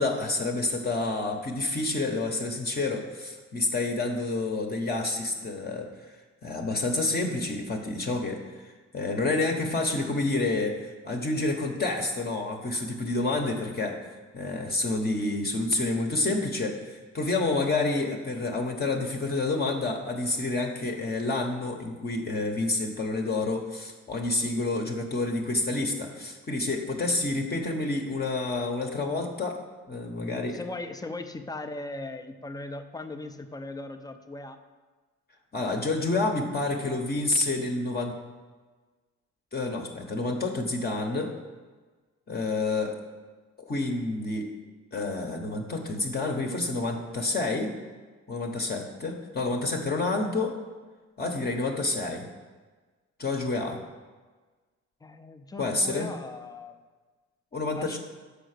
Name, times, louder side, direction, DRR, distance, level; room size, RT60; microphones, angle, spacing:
voice 1, 0.0-6.2 6.4-14.0 14.3-29.6 29.9-30.6 35.5-38.2 39.5-41.3 42.3-43.0 43.6-44.5 44.9-47.7 48.3-50.5 51.2-52.3 53.2-53.8 55.6-56.1 57.5-58.0, left 2 dB, 30° left, 1 dB, 0.9 m, -29 dB
voice 2, 30.5-34.6 55.0-56.8 57.7-58.0, left 2 dB, 15° left, 7 dB, 0.5 m, -38 dB
5.7 x 5.1 x 6.5 m, 1.4 s
cardioid pair, 90°, 30 cm